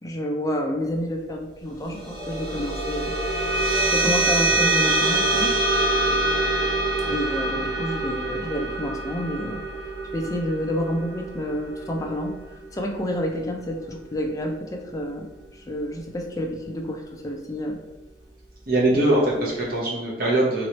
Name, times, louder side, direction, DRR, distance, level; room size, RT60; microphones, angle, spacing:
voice 1, 0.0-3.2 3.6-5.6 7.1-9.6 10.1-12.3 12.7-15.3 15.7-17.8 18.9-19.5, equal, 20° left, 1 dB, 0.4 m, -29 dB
sound 1, 1.8-12.6, right 2 dB, 25° right, 0.9 m, -25 dB
voice 2, 18.7-20.7, right 1 dB, 55° right, -5 dB, 0.9 m, -22 dB
3.0 x 2.9 x 3.0 m, 1.1 s
head